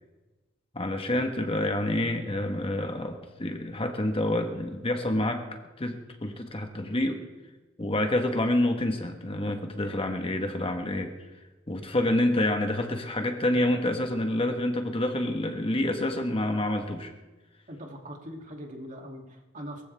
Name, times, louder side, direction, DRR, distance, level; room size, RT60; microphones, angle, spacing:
voice 1, 0.7-5.4 5.8-7.2 7.8-11.1 11.7-17.1, left 1 dB, 30° left, 5 dB, 1.4 m, -28 dB
voice 2, 17.7-19.8, equal, 40° right, 1 dB, 2.7 m, -41 dB
22.0 x 15.0 x 3.5 m, 1.2 s
head